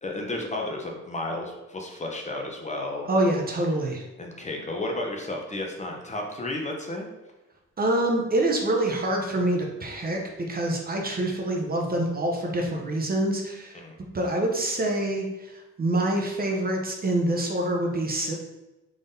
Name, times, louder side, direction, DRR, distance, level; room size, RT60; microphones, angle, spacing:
voice 1, 0.0-3.1 4.2-7.1 13.7-14.0, left 2 dB, 25° left, 1 dB, 0.7 m, -32 dB
voice 2, 3.0-4.0 7.8-10.2 10.5-13.8 14.1-15.5 15.8-18.4, right 1 dB, 30° right, 0 dB, 0.7 m, -26 dB
3.8 x 3.4 x 2.7 m, 1.0 s
cardioid pair, 90°, 30 cm